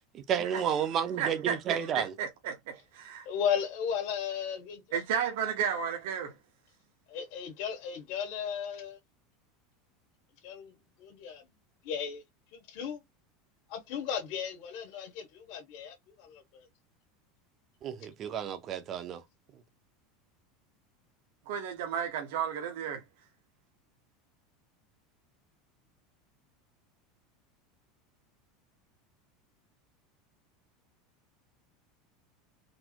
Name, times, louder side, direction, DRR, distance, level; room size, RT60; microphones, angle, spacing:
voice 1, 0.1-2.1 17.8-19.2, right 8 dB, 30° right, 0.7 m, -31 dB
voice 2, 1.2-3.3 4.9-6.3 21.5-23.0, right 8 dB, 70° right, 1.0 m, -33 dB
voice 3, 3.3-5.0 7.1-9.0 10.4-10.7 11.0-11.5 11.8-12.2 12.5-13.0 13.7-16.6, left 8 dB, 55° left, 1.7 m, -35 dB
4.2 x 2.7 x 2.8 m
supercardioid pair, 165°, 0 cm